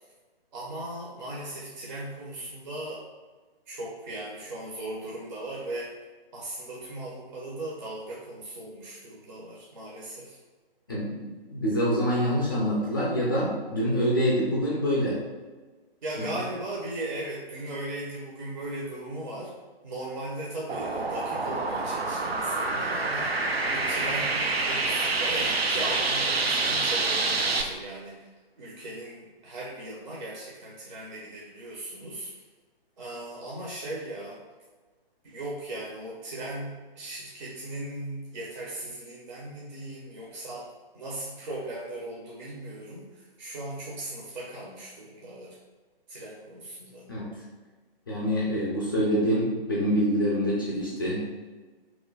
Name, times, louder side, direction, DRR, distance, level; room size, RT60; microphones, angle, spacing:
voice 1, 0.5-3.0 3.7-5.9 6.3-10.4 16.0-19.5 19.8-28.3 28.6-32.3 33.0-34.4 35.2-40.7 40.9-45.6 46.1-47.1, right 1 dB, 50° right, -5 dB, 0.7 m, -38 dB
voice 2, 11.5-15.2 16.2-16.3 47.1-47.3 48.1-51.3, equal, 25° left, -5 dB, 0.4 m, -26 dB
sound 1, 20.7-27.6, right 3 dB, 85° right, 0.5 m, -27 dB
3.0 x 2.1 x 3.8 m, 1.3 s
figure-of-eight pair, 135°, 30 cm